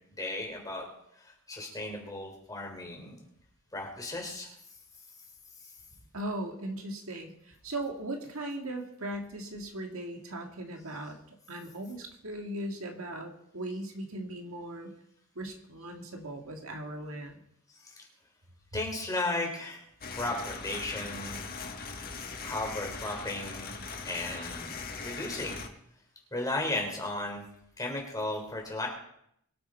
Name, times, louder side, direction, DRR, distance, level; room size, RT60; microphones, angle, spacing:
voice 1, 0.2-0.9 1.2-3.2 3.7-4.5 17.8-18.1 18.7-19.8 20.2-21.5 22.4-23.8 24.0-25.6 26.3-27.5 27.8-28.9, left 2 dB, 15° left, 0 dB, 3.7 m, -35 dB
voice 2, 6.1-7.3 7.6-11.2 11.5-14.9 15.4-17.4, right 1 dB, 70° right, 3 dB, 2.0 m, -38 dB
sound 1, 20.0-25.7, left 4 dB, 45° left, 1.4 m, -40 dB
23.0 x 8.5 x 4.5 m, 0.72 s
head